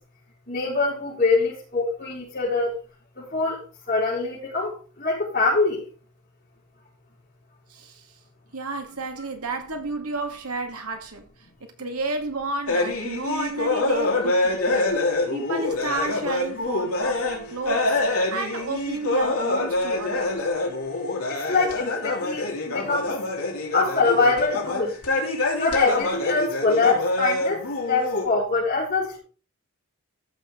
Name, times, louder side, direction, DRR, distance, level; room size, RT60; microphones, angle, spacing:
voice 1, 0.5-2.7 3.2-3.6 3.9-4.7 5.0-5.8 21.3-23.2 23.7-24.9 25.6-27.6 27.9-29.2, left 3 dB, 40° left, 5.6 m, -24 dB
voice 2, 7.7-8.1 8.5-11.2 11.6-15.0 15.3-18.0 18.3-20.4, right 2 dB, 90° right, 2.1 m, -31 dB
sound 1, 12.7-28.2, left 2 dB, 75° left, 3.0 m, -26 dB
14.0 x 6.5 x 3.9 m
head